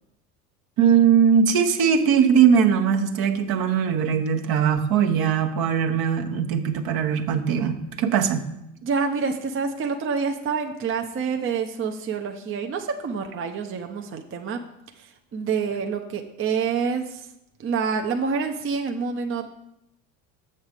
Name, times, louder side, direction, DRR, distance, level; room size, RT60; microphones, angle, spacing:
voice 1, 0.8-8.4, right 7 dB, 55° right, 4 dB, 1.1 m, -20 dB
voice 2, 8.8-14.6 15.0-17.3 17.6-19.5, right 5 dB, 30° right, 4 dB, 0.7 m, -27 dB
7.1 x 6.6 x 5.0 m, 0.83 s
hypercardioid pair, 80°, 43 cm